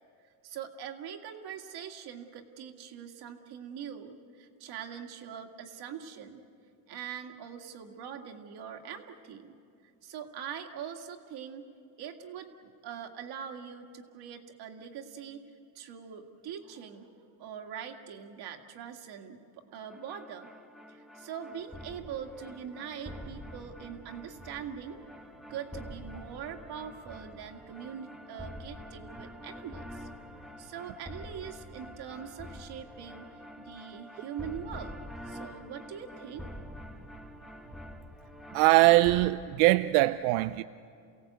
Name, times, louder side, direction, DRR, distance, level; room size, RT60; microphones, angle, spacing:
voice 1, 0.4-6.4 6.9-9.5 10.0-11.7 12.0-15.4 15.8-20.5 20.9-25.0 25.5-35.0 35.2-37.1, right 8 dB, 60° right, 2.1 m, -43 dB
sound 1, 19.9-39.3, left 1 dB, ahead, 1.1 m, -46 dB
voice 2, 38.5-40.6, right 18 dB, 85° right, 0.6 m, -22 dB
29.0 x 17.0 x 8.1 m
cardioid pair, 115°, 43 cm